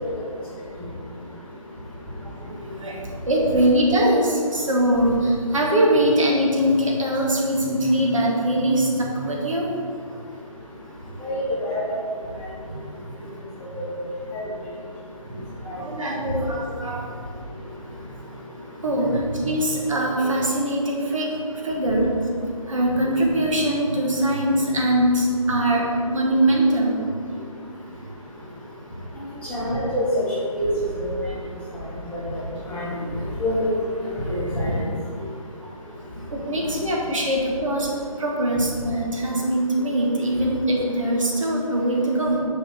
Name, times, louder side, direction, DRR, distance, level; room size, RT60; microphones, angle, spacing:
voice 1, 2.2-9.7 12.6-12.8 13.2-13.4 15.2-17.2 17.9-18.2 18.8-22.1 22.7-27.0 34.6-34.8 36.3-37.9 38.2-42.4, right 1 dB, 65° right, -2 dB, 1.5 m, -22 dB
voice 2, 29.5-30.2 30.5-30.7 31.0-31.1 32.1-32.2 32.7-32.9 33.4-33.5 34.3-34.7, left 1 dB, 5° left, -11 dB, 1.6 m, -26 dB
6.4 x 4.9 x 4.5 m, 2.2 s
figure-of-eight pair, 150°, 18 cm